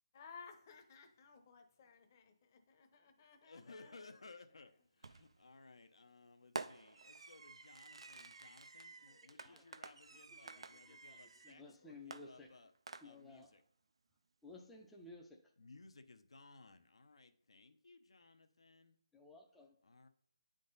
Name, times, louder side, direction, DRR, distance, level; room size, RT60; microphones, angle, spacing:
voice 1, 0.1-4.1, left 5 dB, 30° left, 5 dB, 0.8 m, -58 dB
voice 2, 3.4-12.7 13.0-13.6 15.6-19.0 19.8-20.1, left 3 dB, 75° left, 7 dB, 0.8 m, -60 dB
Fireworks, 5.0-5.4 6.6-11.6 12.1-13.4, right 4 dB, 70° right, 0.4 m, -51 dB
voice 3, 9.0-9.8 10.1-11.2 11.4-12.5 13.0-13.5 14.4-15.5 19.1-19.8, left 2 dB, 5° left, -2 dB, 0.5 m, -57 dB
8.3 x 3.8 x 4.0 m, 0.67 s
figure-of-eight pair, 160°, 3 cm